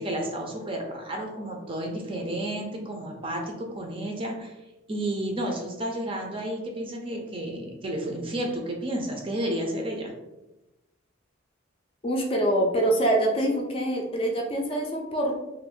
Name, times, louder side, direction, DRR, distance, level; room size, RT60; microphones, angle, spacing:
voice 1, 0.0-4.5 4.9-10.1, right 1 dB, 25° right, 1 dB, 0.5 m, -31 dB
voice 2, 12.0-15.4, right 1 dB, 30° left, 1 dB, 0.4 m, -25 dB
2.5 x 2.5 x 3.5 m, 1.0 s
head